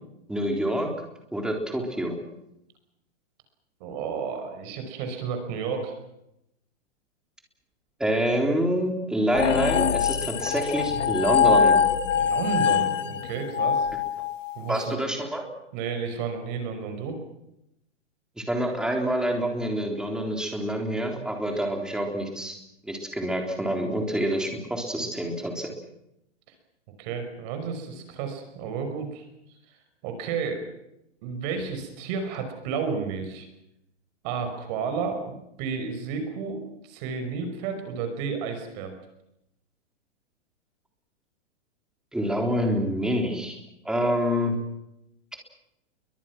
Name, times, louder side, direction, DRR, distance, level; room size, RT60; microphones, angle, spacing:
voice 1, 0.3-0.9 1.3-2.2 8.0-11.8 14.7-15.4 18.4-22.6 22.8-25.7 42.1-43.6 43.8-44.6, equal, ahead, 2 dB, 3.7 m, -27 dB
voice 2, 3.8-5.9 12.1-13.9 14.6-15.0 15.7-17.2 25.0-25.1 27.0-29.3 30.0-30.6 31.2-33.5 34.2-35.3 35.6-38.9, right 5 dB, 35° right, 6 dB, 5.5 m, -32 dB
sound 1, 9.3-14.8, left 7 dB, 80° left, 1.7 m, -23 dB
30.0 x 23.5 x 6.1 m, 0.84 s
hypercardioid pair, 165°, 36 cm